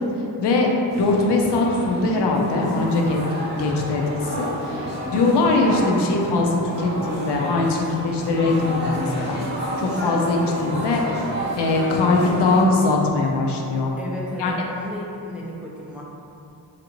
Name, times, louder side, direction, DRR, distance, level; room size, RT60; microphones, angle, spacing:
voice 1, 0.4-3.2 3.6-9.4 9.8-11.2 11.6-13.9 14.4-14.5, left 3 dB, 70° left, 0 dB, 0.5 m, -21 dB
sound 1, 0.9-12.6, equal, 25° right, 0.7 m, -30 dB
voice 2, 14.0-16.0, equal, 5° right, -5 dB, 0.4 m, -33 dB
3.2 x 2.6 x 2.9 m, 2.7 s
wide cardioid pair, 105°, 43 cm